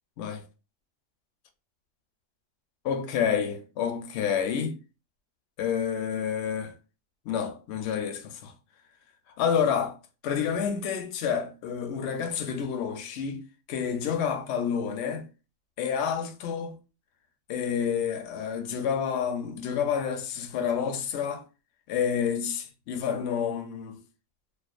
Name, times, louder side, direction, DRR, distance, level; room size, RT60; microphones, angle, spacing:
voice 1, 2.8-4.8 5.6-6.7 7.3-8.5 9.4-10.0 10.2-13.4 13.7-15.3 15.8-16.8 17.5-21.4 21.9-24.0, left 7 dB, 65° left, 0.7 m, -29 dB
2.4 x 2.3 x 2.4 m
omnidirectional pair, 1.4 m